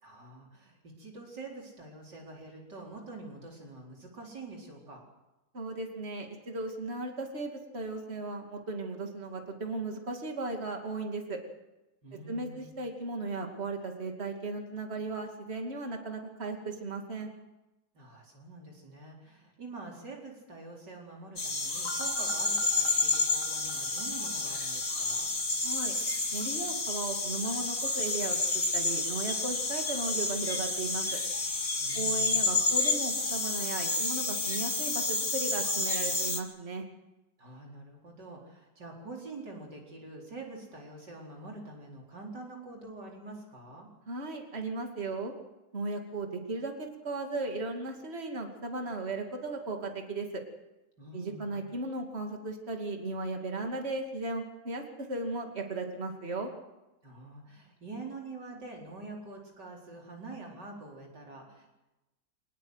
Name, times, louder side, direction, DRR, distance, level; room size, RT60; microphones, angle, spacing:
voice 1, 0.0-5.0 12.0-12.8 17.9-25.3 31.8-32.6 37.4-43.9 51.0-51.7 57.0-61.7, right 2 dB, 75° right, -1 dB, 5.0 m, -46 dB
voice 2, 5.5-11.4 12.3-17.3 25.6-25.9 26.3-31.2 31.9-36.8 44.1-45.3 45.7-50.4 51.1-56.5, right 2 dB, 35° right, 3 dB, 2.8 m, -36 dB
sound 1, 21.4-36.4, left 3 dB, 35° left, 2.5 m, -30 dB
sound 2, 21.8-25.8, equal, 70° left, 4.5 m, -45 dB
24.5 x 19.5 x 8.1 m, 0.99 s
omnidirectional pair, 1.9 m